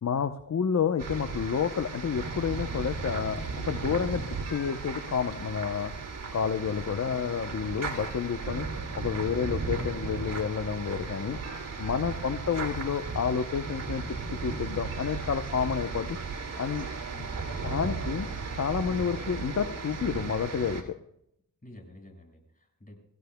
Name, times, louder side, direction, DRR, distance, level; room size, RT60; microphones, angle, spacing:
voice 1, 0.0-3.4 3.7-4.2 4.5-5.9 6.3-8.7 8.9-11.4 11.8-14.0 14.3-16.2 16.6-16.9 17.6-18.3 18.6-21.0, left 7 dB, 50° left, 9 dB, 0.9 m, -29 dB
sound 1, 1.0-20.8, right 4 dB, 65° right, 3.0 m, -36 dB
voice 2, 17.0-18.2 21.6-23.0, left 1 dB, 25° left, 2 dB, 5.8 m, -50 dB
25.5 x 15.5 x 2.3 m, 0.75 s
cardioid pair, 60°, 35 cm